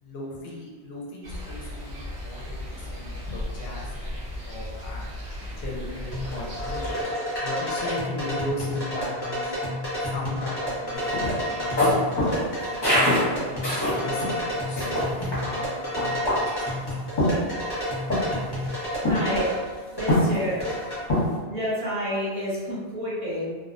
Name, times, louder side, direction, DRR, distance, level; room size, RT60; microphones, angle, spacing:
voice 1, 0.0-3.9 4.5-5.1 5.6-7.0 7.4-9.7 10.0-11.2 11.6-12.5 13.0-16.4 16.7-17.1, left 2 dB, 70° left, -3 dB, 0.8 m, -37 dB
sound 1, 1.2-7.0, left 1 dB, 80° right, 1.0 m, -36 dB
sound 2, 6.1-21.0, equal, 25° left, 0.7 m, -30 dB
sound 3, 10.9-14.4 14.8-15.4 16.0-16.6 17.2-17.8 18.1-18.4 19.1-19.5 20.1-20.7 21.1-21.4, left 1 dB, 45° left, 1.0 m, -24 dB
voice 2, 19.0-20.6 21.5-23.5, equal, 35° right, -10 dB, 0.8 m, -29 dB
2.5 x 2.0 x 2.4 m, 1.4 s
omnidirectional pair, 1.1 m